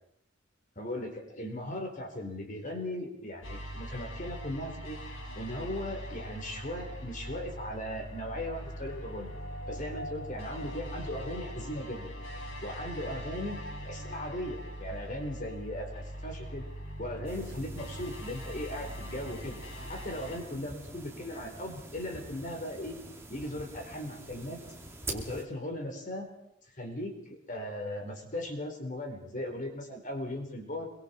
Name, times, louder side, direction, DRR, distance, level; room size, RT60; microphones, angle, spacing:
voice 1, 0.8-5.0 5.4-9.3 9.7-12.1 12.6-16.7 17.0-19.6 19.9-23.0 23.3-24.6 25.1-26.3 26.8-30.9, left 1 dB, 40° left, 3 dB, 4.0 m, -38 dB
sound 1, 3.4-20.4, equal, 85° left, 6.4 m, -41 dB
sound 2, 17.2-25.4, right 2 dB, 15° right, 2.5 m, -45 dB
26.5 x 24.0 x 4.5 m, 0.71 s
head